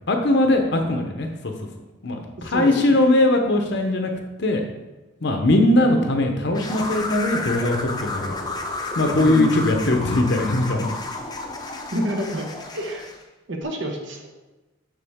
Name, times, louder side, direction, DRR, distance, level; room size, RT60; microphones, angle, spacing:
voice 1, 0.0-1.5 2.0-4.1 4.4-4.6 5.2-10.9, left 1 dB, 55° left, 4 dB, 0.7 m, -20 dB
voice 2, 2.4-3.0 9.1-9.9 11.9-12.5 12.7-13.1 13.5-14.3, equal, 60° right, 1 dB, 1.0 m, -28 dB
sound 1, 6.5-13.2, left 2 dB, 20° left, 0.6 m, -31 dB
6.9 x 5.9 x 3.5 m, 1.1 s
head